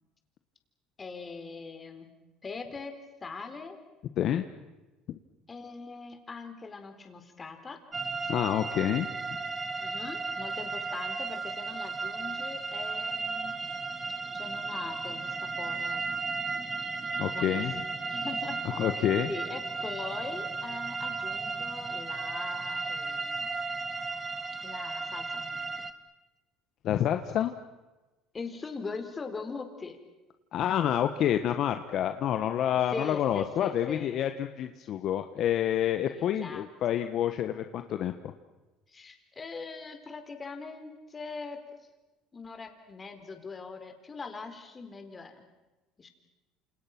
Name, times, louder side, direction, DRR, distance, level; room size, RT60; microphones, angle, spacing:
voice 1, 1.0-2.1 2.4-3.8 5.5-7.8 8.2-8.3 9.8-13.6 14.3-16.2 17.2-17.6 18.1-18.6 19.3-23.6 24.6-25.9 28.3-30.0 32.9-34.3 36.0-36.7 38.9-41.6 42.3-45.4 46.0-46.1, left 4 dB, 30° left, 7 dB, 4.3 m, -41 dB
sound 1, 7.9-25.9, right 4 dB, 25° right, 1.9 m, -35 dB
voice 2, 8.3-9.1 17.2-17.7 18.6-19.3 26.8-27.5 30.5-38.1, left 10 dB, 55° left, 8 dB, 1.4 m, -28 dB
28.5 x 28.0 x 6.1 m, 1.1 s
supercardioid pair, 80°, 0 cm